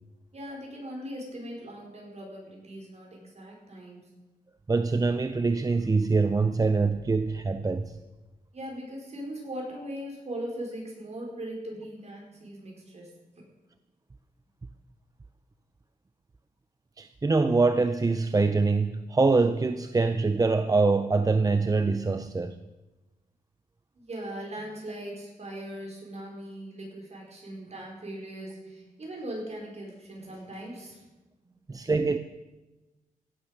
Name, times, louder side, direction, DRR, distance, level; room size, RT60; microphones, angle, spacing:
voice 1, 0.3-4.1 8.5-13.5 23.9-31.0 31.4-31.6, right 1 dB, 45° right, -1 dB, 4.8 m, -40 dB
voice 2, 4.7-8.0 17.0-22.6 31.7-32.2, right 3 dB, 25° right, 9 dB, 0.5 m, -24 dB
16.0 x 8.9 x 6.6 m, 1.1 s
wide cardioid pair, 110°, 15 cm